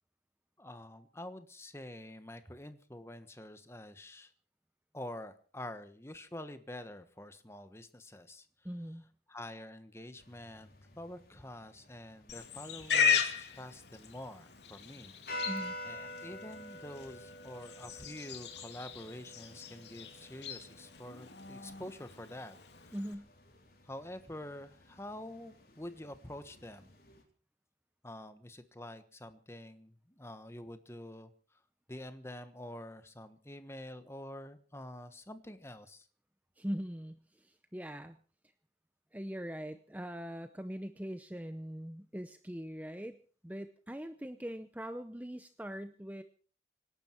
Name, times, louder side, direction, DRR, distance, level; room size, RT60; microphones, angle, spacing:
voice 1, 0.6-4.3 4.9-8.5 9.3-15.1 15.8-22.5 23.8-26.9 28.0-31.6 31.9-36.1, left 1 dB, 15° left, 10 dB, 1.3 m, -47 dB
voice 2, 8.6-9.0 15.4-15.8 22.9-23.3 36.6-38.2 39.1-43.2 43.4-46.2, equal, 10° right, 9 dB, 0.7 m, -41 dB
sound 1, 10.2-27.2, equal, 55° left, 4.2 m, -50 dB
Livestock farm animals working animals, 12.3-23.1, left 7 dB, 75° left, 2.4 m, -37 dB
26.0 x 12.0 x 4.6 m, 0.41 s
head